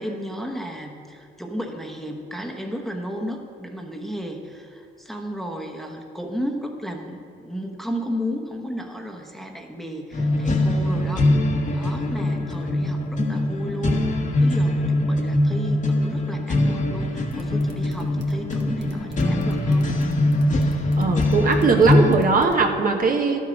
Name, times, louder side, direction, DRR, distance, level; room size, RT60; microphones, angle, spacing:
voice 1, 0.0-19.9, equal, ahead, 1 dB, 1.2 m, -33 dB
sound 1, 10.1-22.1, left 1 dB, 40° left, 1.4 m, -22 dB
sound 2, 17.3-22.6, right 4 dB, 60° right, 1.5 m, -43 dB
voice 2, 21.0-23.4, right 4 dB, 45° right, 3 dB, 1.1 m, -19 dB
12.0 x 7.6 x 5.2 m, 2.5 s
cardioid pair, 90°, 20 cm